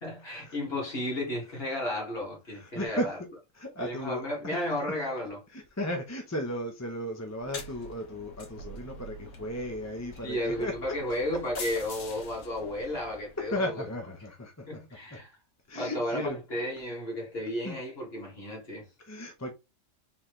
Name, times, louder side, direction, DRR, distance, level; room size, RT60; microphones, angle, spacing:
voice 1, 0.0-3.1 3.8-5.4 10.2-13.8 14.7-15.3 15.7-18.9, left 1 dB, 45° left, 2.4 m, -33 dB
voice 2, 2.5-3.1 3.5-4.6 5.5-11.0 13.4-14.8 15.1-15.2 15.7-16.4 17.6-17.8 19.0-19.5, left 1 dB, 15° left, 0.7 m, -35 dB
sound 1, 7.3-13.7, left 2 dB, 80° left, 1.6 m, -45 dB
4.2 x 3.9 x 3.2 m
omnidirectional pair, 1.5 m